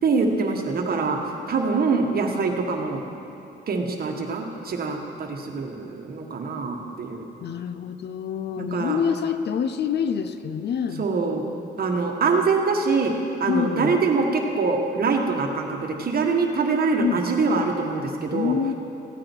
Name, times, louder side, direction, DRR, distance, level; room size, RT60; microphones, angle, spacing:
voice 1, 0.0-1.2 1.5-3.0 3.7-7.2 8.6-9.0 11.0-11.4 11.8-13.1 13.4-18.5, right 4 dB, 50° right, 2 dB, 1.5 m, -24 dB
voice 2, 7.4-11.1 13.5-14.0 17.0-17.2 18.3-18.7, left 7 dB, 60° left, 10 dB, 0.6 m, -26 dB
16.0 x 8.8 x 4.6 m, 2.8 s
cardioid pair, 90°, 20 cm